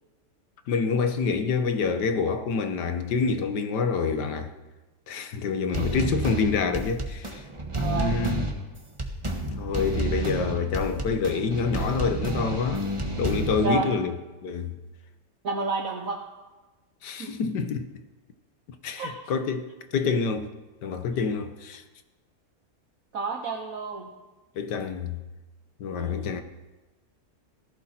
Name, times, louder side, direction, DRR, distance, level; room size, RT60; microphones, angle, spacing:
voice 1, 0.7-4.5 5.1-7.4 7.9-8.5 9.6-12.8 13.2-14.2 14.4-14.7 17.0-17.9 18.8-20.5 20.8-21.8 24.6-25.2 25.8-26.4, left 5 dB, 85° left, 1.7 m, -27 dB
sound 1, 5.7-13.7, right 1 dB, 20° right, 1.6 m, -30 dB
voice 2, 5.7-6.1 7.8-8.2 13.6-13.9 15.4-16.2 17.2-17.3 19.0-19.1 23.1-24.1 26.0-26.3, right 4 dB, 60° right, 1.5 m, -30 dB
18.5 x 15.0 x 4.4 m
omnidirectional pair, 1.8 m